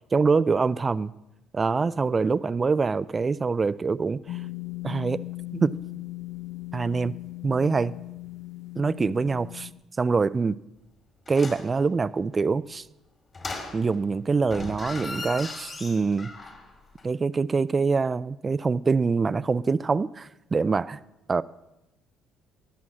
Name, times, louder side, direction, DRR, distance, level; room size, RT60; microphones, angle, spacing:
voice 1, 0.1-1.1 1.5-4.4 4.8-5.2 5.5-5.8 6.7-7.2 7.4-7.9 8.8-9.5 10.0-10.6 11.3-12.9 13.7-16.3 17.0-21.0 21.3-21.4, right 4 dB, 30° right, 0.4 m, -24 dB
sound 1, 4.3-9.7, left 18 dB, 75° left, 0.7 m, -38 dB
sound 2, 11.3-11.7 13.3-14.1 14.4-16.7 17.0-17.1, left 3 dB, 35° left, 2.5 m, -37 dB
17.0 x 6.3 x 7.3 m
cardioid pair, 90°, 0 cm